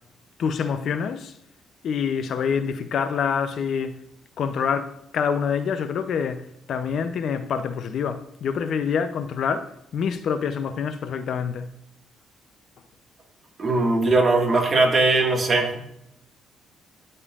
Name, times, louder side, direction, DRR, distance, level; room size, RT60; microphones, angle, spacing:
voice 1, 0.4-1.3 1.8-4.0 4.4-11.7, left 6 dB, 65° left, 0.5 m, -26 dB
voice 2, 13.6-15.8, right 3 dB, 35° right, 1.7 m, -20 dB
9.8 x 5.4 x 2.4 m
cardioid pair, 90°, 0 cm